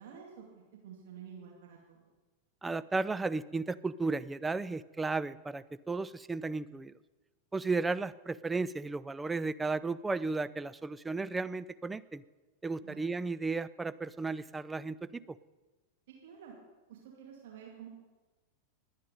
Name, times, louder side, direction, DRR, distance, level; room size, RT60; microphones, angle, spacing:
voice 1, 0.0-2.1 12.8-13.0 16.2-16.5 16.9-17.9, right 8 dB, 55° right, -1 dB, 2.4 m, -50 dB
voice 2, 2.6-6.9 7.5-12.2 12.6-15.4, right 3 dB, 10° right, 14 dB, 0.4 m, -34 dB
21.5 x 9.3 x 5.2 m, 1.2 s
figure-of-eight pair, 90°, 0 cm